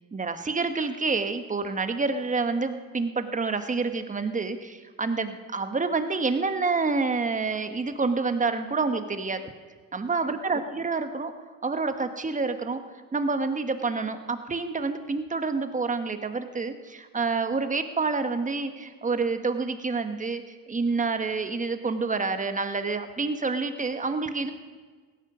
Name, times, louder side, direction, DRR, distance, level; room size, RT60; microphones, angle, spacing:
voice 1, 0.1-9.4 9.9-11.3 11.6-12.8 13.1-24.5, right 4 dB, 20° right, 8 dB, 1.3 m, -28 dB
16.5 x 13.0 x 6.1 m, 1.5 s
supercardioid pair, 85°, 37 cm